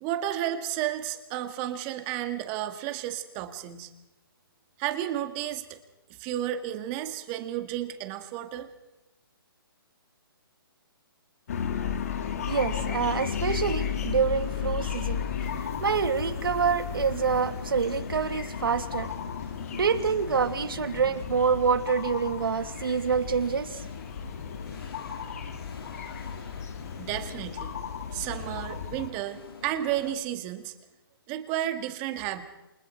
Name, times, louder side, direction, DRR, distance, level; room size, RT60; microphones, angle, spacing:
voice 1, 0.0-3.9 4.8-5.6 6.2-8.7 27.0-27.7 28.1-30.7 31.3-32.4, right 12 dB, 20° right, 2.0 m, -32 dB
sound 1, 11.5-29.1, left 8 dB, 40° left, 2.1 m, -34 dB
voice 2, 12.5-19.1 19.7-23.9, right 6 dB, 70° right, 3.0 m, -27 dB
sound 2, 13.4-30.1, left 4 dB, 75° left, 4.9 m, -46 dB
29.0 x 25.0 x 4.7 m
hypercardioid pair, 170°, 12 cm